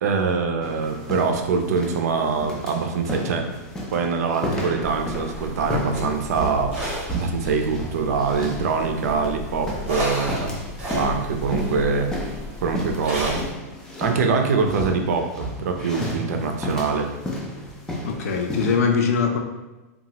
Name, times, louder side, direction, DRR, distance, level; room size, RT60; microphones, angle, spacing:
voice 1, 0.0-3.5 3.9-10.6 11.0-12.1 12.6-13.4 14.0-17.1, right 5 dB, 75° right, 4 dB, 0.5 m, -24 dB
sound 1, 0.6-18.8, left 1 dB, 5° left, 0.3 m, -33 dB
sound 2, 4.8-13.5, equal, 10° right, 0.8 m, -33 dB
voice 2, 18.0-19.4, left 5 dB, 65° left, 4 dB, 0.5 m, -22 dB
2.9 x 2.3 x 2.8 m, 1.1 s
supercardioid pair, 160°, 9 cm